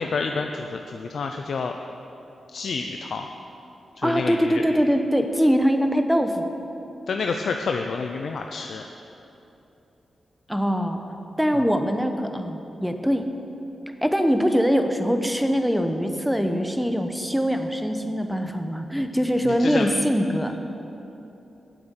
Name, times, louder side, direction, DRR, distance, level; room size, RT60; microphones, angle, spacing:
voice 1, 0.0-1.7 2.5-3.3 4.0-4.6 7.1-8.9 11.5-11.7 19.6-19.9, left 4 dB, 70° left, 4 dB, 0.5 m, -29 dB
voice 2, 4.0-6.5 10.5-11.0 11.4-13.3 14.0-20.6, equal, ahead, 6 dB, 0.9 m, -23 dB
9.3 x 7.7 x 8.1 m, 3.0 s
cardioid pair, 80°, 0 cm